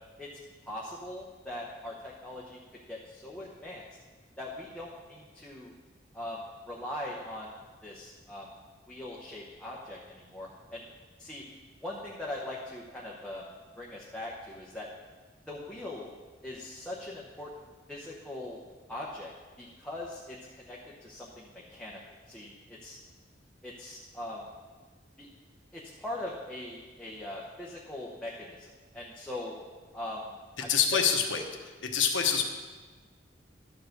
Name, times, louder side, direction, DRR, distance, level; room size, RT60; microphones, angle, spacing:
voice 1, 0.7-2.6 2.9-3.8 4.4-5.7 6.1-7.5 7.8-8.5 8.9-10.8 11.2-11.4 11.8-13.5 13.8-14.9 15.5-16.1 16.4-17.5 17.9-18.6 18.9-19.3 19.6-22.0 22.3-23.0 23.6-24.5 25.2-25.3 25.7-29.5 29.9-30.3 30.6-31.0, left 1 dB, 5° left, -5 dB, 0.9 m, -41 dB
voice 2, 30.7-31.4 31.8-32.4, left 7 dB, 75° left, 3 dB, 1.1 m, -25 dB
12.0 x 4.8 x 6.5 m, 1.4 s
head